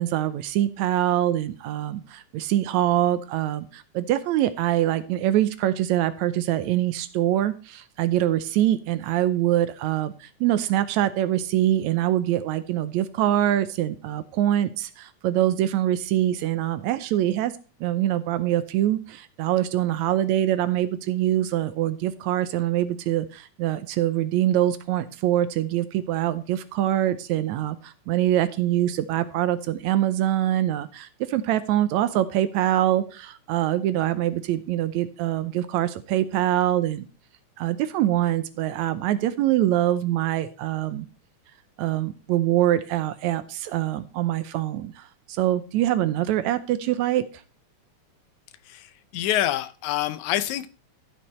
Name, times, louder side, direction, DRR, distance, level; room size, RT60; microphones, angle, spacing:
voice 1, 0.0-17.5 17.8-37.1 37.6-41.1 41.8-47.2, right 13 dB, 75° right, 2.0 m, -24 dB
voice 2, 48.7-50.7, left 13 dB, 80° left, 2.1 m, -26 dB
14.0 x 5.4 x 4.3 m
omnidirectional pair, 3.4 m